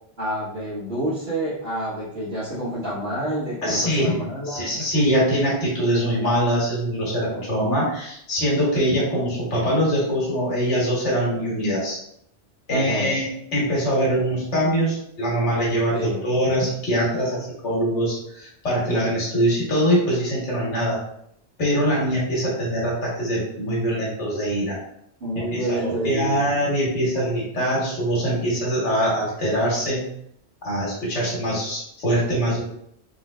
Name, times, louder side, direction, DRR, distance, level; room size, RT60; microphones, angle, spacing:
voice 1, 0.2-4.7 12.7-13.1 15.9-16.2 25.2-26.5, right 1 dB, 60° right, -13 dB, 1.7 m, -28 dB
voice 2, 3.6-12.0 12.7-21.0 21.6-24.8 25.3-30.1 30.6-32.6, equal, 85° left, -5 dB, 1.5 m, -23 dB
3.7 x 3.1 x 2.2 m, 0.72 s
omnidirectional pair, 1.2 m